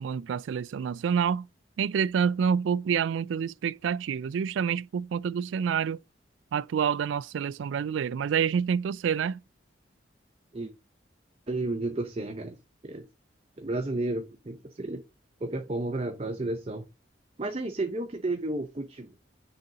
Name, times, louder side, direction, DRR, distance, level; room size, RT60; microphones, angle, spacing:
voice 1, 0.0-1.5 1.8-6.0 6.5-9.4, right 7 dB, 85° right, 0.3 m, -27 dB
voice 2, 11.5-12.6 12.8-13.0 13.6-15.0 15.4-16.8 17.4-19.1, right 2 dB, 35° right, 0.7 m, -32 dB
6.8 x 4.0 x 4.9 m
head